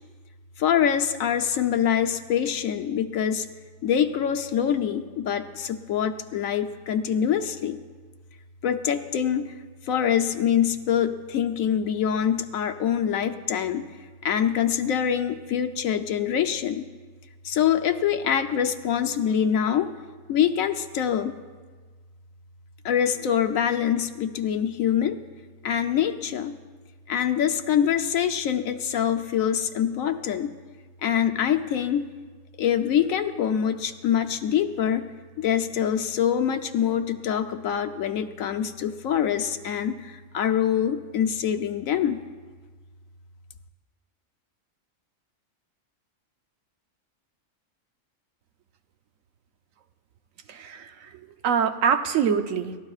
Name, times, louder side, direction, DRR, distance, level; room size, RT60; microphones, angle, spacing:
voice 1, 0.6-3.5 3.8-7.8 8.6-9.5 9.9-13.8 14.2-16.9 17.4-19.9 20.3-21.4 22.8-25.2 25.6-26.5 27.1-30.5 31.0-32.0 32.6-35.1 35.4-42.2, left 9 dB, 85° left, 7 dB, 1.2 m, -24 dB
voice 2, 50.5-52.8, right 7 dB, 80° right, 8 dB, 1.2 m, -25 dB
29.0 x 13.0 x 2.4 m, 1.4 s
omnidirectional pair, 1.4 m